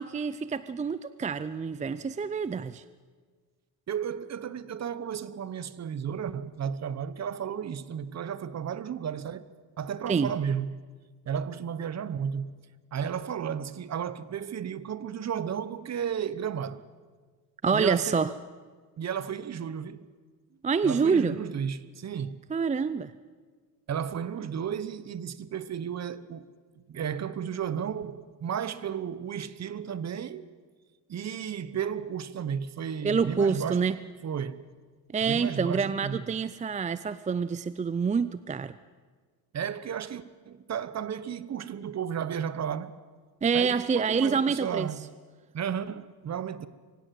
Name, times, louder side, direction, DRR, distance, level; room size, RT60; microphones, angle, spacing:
voice 1, 0.0-2.8 10.1-10.3 17.6-18.3 20.6-21.3 22.5-23.1 33.0-34.0 35.1-38.7 43.4-44.9, right 5 dB, 20° right, 0.5 m, -27 dB
voice 2, 3.9-9.5 9.8-10.8 11.3-12.6 12.9-16.8 17.7-18.2 19.0-20.1 20.8-22.4 23.9-26.5 26.8-30.5 31.1-34.0 34.2-34.7 35.2-36.4 39.5-43.0 43.5-45.1 45.5-46.7, right 8 dB, 40° right, 1.1 m, -33 dB
24.0 x 17.0 x 7.7 m
cardioid pair, 95°, 39 cm